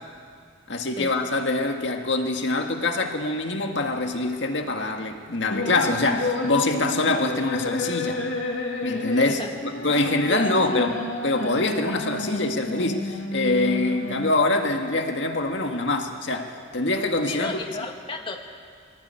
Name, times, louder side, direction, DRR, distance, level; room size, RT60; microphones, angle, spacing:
voice 1, 0.7-8.2 8.8-11.0 11.2-17.5, left 2 dB, 70° left, 4 dB, 1.9 m, -24 dB
sound 1, 5.5-14.5, left 2 dB, 90° left, 2.9 m, -30 dB
voice 2, 10.3-10.8 17.3-18.4, left 2 dB, 25° left, 3 dB, 1.4 m, -33 dB
24.0 x 18.0 x 9.1 m, 2.2 s
head